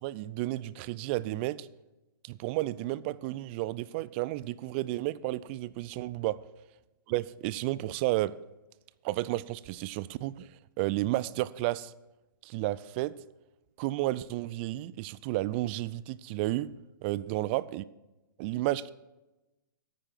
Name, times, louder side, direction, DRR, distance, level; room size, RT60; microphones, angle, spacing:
voice 1, 0.0-1.7 2.2-6.4 7.1-8.3 9.0-10.5 10.8-11.9 12.4-13.1 13.8-16.7 17.0-17.8 18.4-18.9, right 17 dB, 30° right, 0.4 m, -32 dB
9.8 x 9.1 x 5.7 m
figure-of-eight pair, 120°, 12 cm